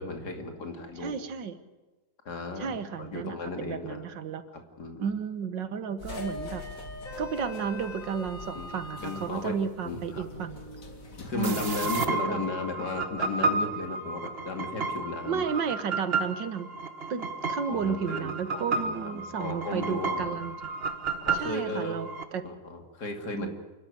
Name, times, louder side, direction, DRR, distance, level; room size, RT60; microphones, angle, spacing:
voice 1, 0.0-1.1 2.2-2.7 3.0-4.1 4.5-5.0 8.5-9.6 9.8-10.2 11.2-15.4 17.7-20.4 21.2-22.1 22.4-23.5, left 2 dB, 65° left, 4 dB, 3.2 m, -35 dB
voice 2, 1.0-1.6 2.6-4.4 5.0-6.6 7.2-10.6 11.3-11.7 12.2-12.4 15.3-16.7 17.1-20.6 21.3-22.4 23.3-23.5, right 6 dB, 85° right, 11 dB, 2.0 m, -33 dB
sound 1, 6.0-12.5, left 2 dB, 50° left, 2.6 m, -42 dB
sound 2, 11.4-22.2, right 3 dB, 35° right, 1.4 m, -32 dB
27.5 x 12.5 x 9.5 m, 1.2 s
omnidirectional pair, 1.9 m